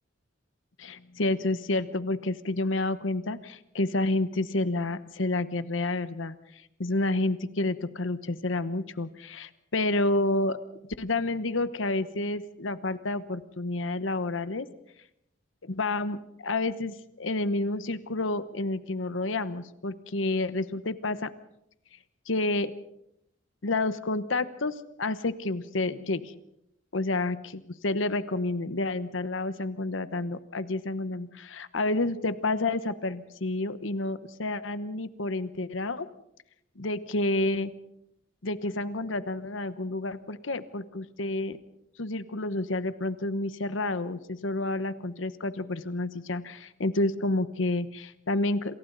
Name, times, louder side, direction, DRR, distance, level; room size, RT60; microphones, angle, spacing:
voice 1, 0.8-6.3 6.8-10.6 11.0-14.7 15.6-21.3 22.3-22.7 23.6-26.3 26.9-36.1 36.8-37.7 38.4-41.6 42.0-48.7, left 2 dB, 85° left, 13 dB, 1.1 m, -29 dB
28.0 x 27.5 x 4.0 m, 0.78 s
head